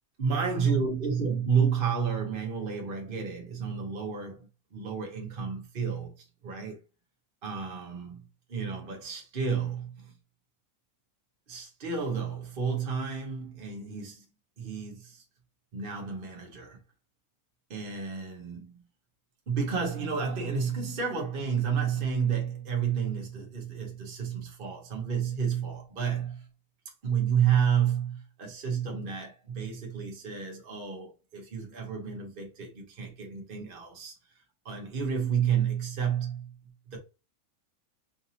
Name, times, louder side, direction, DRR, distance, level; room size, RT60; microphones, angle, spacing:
voice 1, 0.2-6.8 7.4-8.2 8.5-10.1 11.5-14.2 14.6-15.2 15.7-16.8 17.7-18.8 19.5-26.5 27.0-36.5 36.9-37.0, right 7 dB, 40° right, 1.0 m, -31 dB
4.9 x 2.6 x 2.7 m
omnidirectional pair, 1.6 m